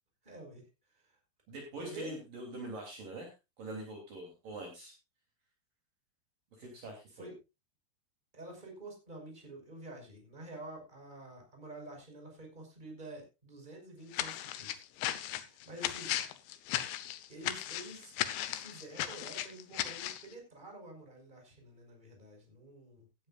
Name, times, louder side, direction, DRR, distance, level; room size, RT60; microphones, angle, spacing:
voice 1, 0.2-0.6 0.9-1.2 1.8-2.1 7.2-7.3 8.3-14.8 15.2-16.1 17.3-18.1 18.5-23.0, right 2 dB, 10° right, 2 dB, 5.2 m, -48 dB
voice 2, 1.5-5.0 6.5-7.3, right 1 dB, 50° right, 1 dB, 4.4 m, -44 dB
sound 1, 14.1-20.3, left 13 dB, 75° left, 3.1 m, -36 dB
17.0 x 12.5 x 2.4 m, 0.26 s
omnidirectional pair, 5.3 m